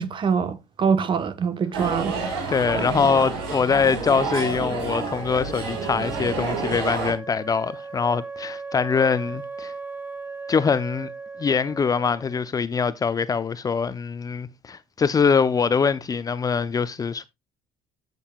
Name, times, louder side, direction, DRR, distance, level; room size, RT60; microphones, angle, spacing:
voice 1, 0.0-2.1, right 6 dB, 40° right, 1.2 m, -24 dB
sound 1, 1.7-7.1, right 4 dB, 85° right, 4.0 m, -29 dB
voice 2, 2.5-9.7 10.5-11.1 11.4-17.3, left 5 dB, 30° left, 0.6 m, -23 dB
Wind instrument woodwind instrument, 4.8-12.5, right 4 dB, 15° right, 1.0 m, -38 dB
15.0 x 5.5 x 2.4 m
hypercardioid pair, 70°, 13 cm